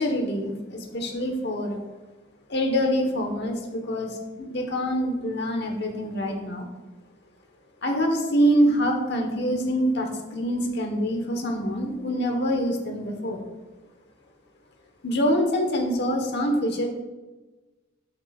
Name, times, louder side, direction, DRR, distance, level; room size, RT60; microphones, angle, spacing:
voice 1, 0.0-1.8 2.5-6.7 7.8-13.5 15.0-16.9, equal, 55° left, 3 dB, 1.2 m, -25 dB
8.5 x 6.4 x 2.4 m, 1.2 s
head